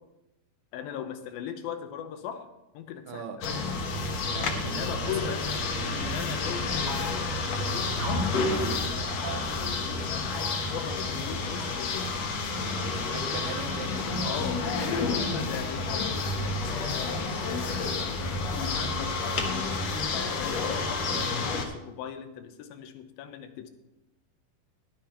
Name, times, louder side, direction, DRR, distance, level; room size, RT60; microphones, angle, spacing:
voice 1, 0.7-2.5 2.7-4.1 4.6-5.5 5.9-8.4 9.3-12.3 14.2-16.6 17.0-19.8 20.1-23.7, left 8 dB, 75° left, 8 dB, 2.6 m, -39 dB
voice 2, 3.1-3.4 4.2-6.0 12.9-14.3 14.7-15.2, right 6 dB, 70° right, 6 dB, 2.2 m, -41 dB
sound 1, 3.4-21.7, left 3 dB, 60° left, 1.9 m, -30 dB
sound 2, 6.9-7.2 8.0-8.3 9.2-9.5 10.3-10.7 11.5-11.9 13.3-13.8 14.6-15.3, equal, 30° right, 0.9 m, -40 dB
11.5 x 9.9 x 4.4 m, 0.94 s
omnidirectional pair, 4.3 m